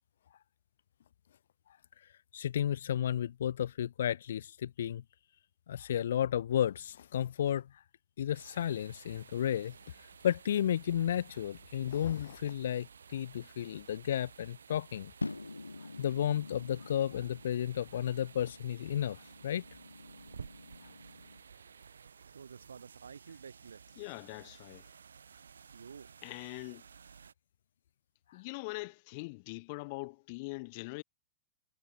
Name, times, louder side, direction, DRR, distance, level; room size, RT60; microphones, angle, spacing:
voice 1, 2.3-5.0 5.7-7.7 8.2-9.7 10.2-15.1 16.0-19.6, left 10 dB, 65° left, 0.4 m, -33 dB
sound 1, 8.3-27.3, right 6 dB, 75° right, 2.0 m, -54 dB
sound 2, 15.2-21.4, left 3 dB, 90° left, 1.5 m, -46 dB
voice 2, 23.9-24.9 26.2-26.8 28.3-31.0, left 27 dB, 50° left, 1.7 m, -42 dB
figure-of-eight pair, 100°, 0 cm